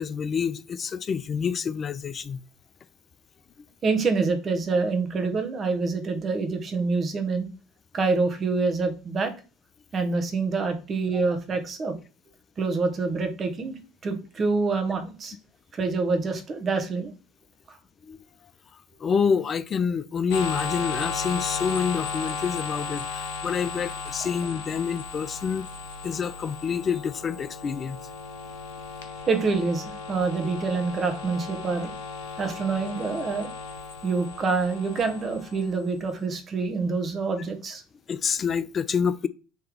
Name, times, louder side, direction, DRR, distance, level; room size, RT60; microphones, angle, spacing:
voice 1, 0.0-2.4 18.1-18.2 19.0-25.7 26.0-28.0 38.1-39.3, left 6 dB, 35° left, 0.3 m, -27 dB
voice 2, 3.8-7.5 7.9-9.3 9.9-12.0 12.6-13.7 14.0-15.3 15.7-17.1 17.7-17.8 29.3-31.9 32.4-33.5 34.0-37.8, right 4 dB, 35° right, 0.9 m, -26 dB
sound 1, 20.3-36.0, left 4 dB, 75° left, 0.6 m, -35 dB
3.3 x 2.8 x 3.7 m
hypercardioid pair, 65°, 0 cm